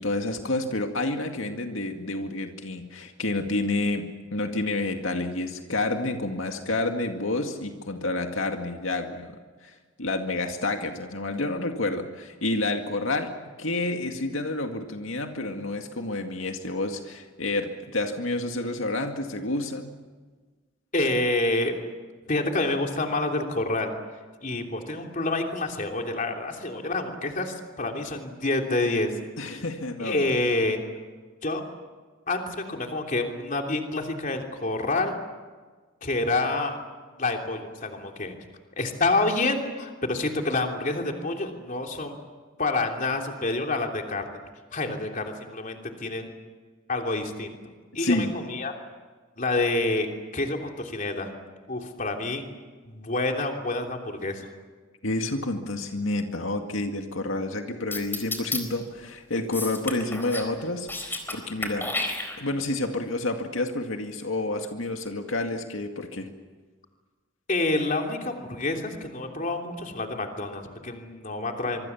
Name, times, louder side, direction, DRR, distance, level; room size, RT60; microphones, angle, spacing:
voice 1, 0.0-20.0 29.4-30.3 44.9-45.0 48.0-48.3 55.0-61.9 62.4-66.3, left 2 dB, 90° left, 4 dB, 2.1 m, -29 dB
voice 2, 20.9-21.8 22.3-23.9 24.4-29.2 30.0-30.8 31.4-31.6 32.3-35.2 36.0-36.8 37.2-38.3 38.8-42.2 42.6-44.3 44.7-46.3 46.9-47.6 47.9-48.7 49.4-50.1 50.3-51.3 51.7-52.4 52.8-54.5 67.5-71.9, left 2 dB, 40° left, 3 dB, 3.2 m, -28 dB
sound 1, 57.9-58.6 59.5-60.5 60.8-61.3 61.6-62.6, left 2 dB, 10° left, 4.2 m, -31 dB
25.0 x 24.5 x 7.3 m, 1.4 s
head